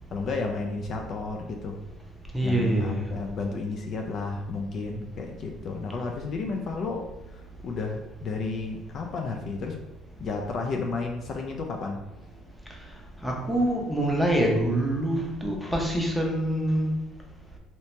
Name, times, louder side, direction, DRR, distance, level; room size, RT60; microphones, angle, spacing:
voice 1, 0.1-1.8 2.4-9.8 10.2-12.0, left 3 dB, 50° left, 2 dB, 0.4 m, -32 dB
voice 2, 2.3-3.0 13.2-16.9, right 1 dB, ahead, -1 dB, 0.7 m, -25 dB
2.8 x 2.8 x 3.2 m, 1.0 s
cardioid pair, 105°, 0 cm